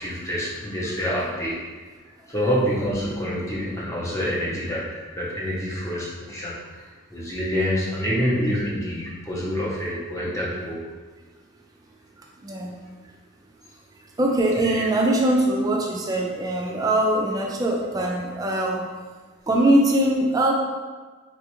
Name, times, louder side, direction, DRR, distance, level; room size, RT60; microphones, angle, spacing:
voice 1, 0.0-1.6 2.3-10.9 14.6-14.9, equal, 15° left, -6 dB, 0.7 m, -27 dB
voice 2, 12.2-12.8 14.2-18.9 19.5-20.6, right 1 dB, 20° right, -1 dB, 0.3 m, -22 dB
4.0 x 2.4 x 2.9 m, 1.4 s
head